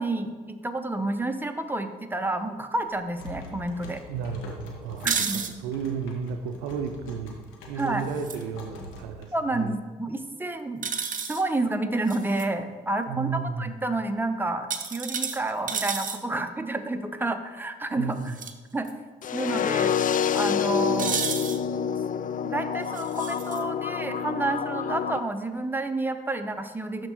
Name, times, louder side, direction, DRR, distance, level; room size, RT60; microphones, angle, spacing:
voice 1, 0.0-4.0 5.0-5.4 7.8-8.1 9.3-11.0 11.2-18.3 18.7-18.9 19.3-21.2 22.5-27.1, right 2 dB, 10° right, 6 dB, 0.8 m, -29 dB
sound 1, 2.8-9.7, left 2 dB, 75° left, 1.1 m, -44 dB
voice 2, 4.1-7.4 7.7-9.8 13.1-13.7 17.9-18.4, right 6 dB, 85° right, 7 dB, 0.5 m, -33 dB
sound 2, 5.0-5.5 8.1-8.4 10.8-11.4 12.1-12.5 14.7-16.2 18.2-18.5 18.9-19.0 21.0-21.6 22.9-23.6, right 6 dB, 40° right, 0.8 m, -31 dB
sound 3, 19.2-25.2, left 8 dB, 40° left, 0.4 m, -27 dB
12.0 x 4.4 x 3.1 m, 1.4 s
hypercardioid pair, 45°, 21 cm